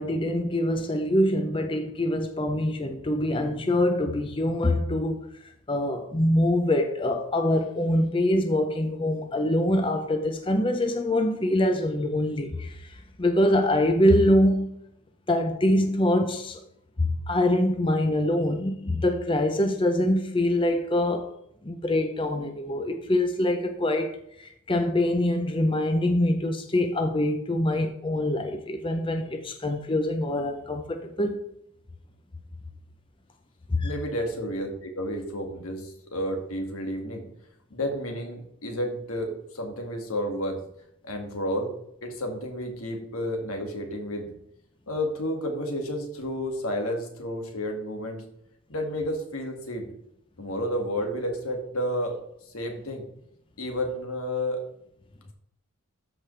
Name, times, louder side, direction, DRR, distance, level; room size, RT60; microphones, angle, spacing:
voice 1, 0.0-5.2 5.7-14.7 15.3-16.6 17.0-21.3 21.6-31.4 33.7-33.9, left 1 dB, 25° left, 0.6 m, -24 dB
voice 2, 33.8-37.2 37.7-40.6 41.0-41.7 42.0-44.3 44.9-48.2 48.7-49.9 50.4-52.2 52.5-53.0 53.6-54.6, equal, 80° left, 2.0 m, -31 dB
13.0 x 5.0 x 3.3 m
head